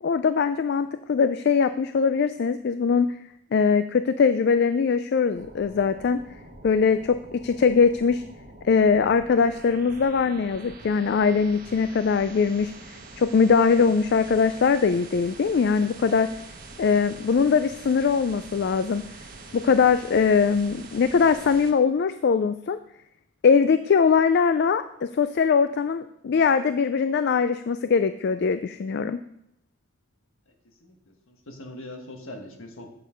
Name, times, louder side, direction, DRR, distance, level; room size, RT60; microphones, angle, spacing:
voice 1, 0.0-3.1 3.5-6.2 6.6-8.2 8.6-12.7 13.2-16.3 16.8-19.1 19.5-22.8 23.4-29.2, left 5 dB, 50° left, 11 dB, 0.3 m, -21 dB
sound 1, 5.3-21.7, right 2 dB, 40° right, 1.3 m, -45 dB
voice 2, 30.8-32.9, left 1 dB, 65° left, 3 dB, 1.5 m, -42 dB
8.5 x 6.8 x 5.1 m, 0.75 s
head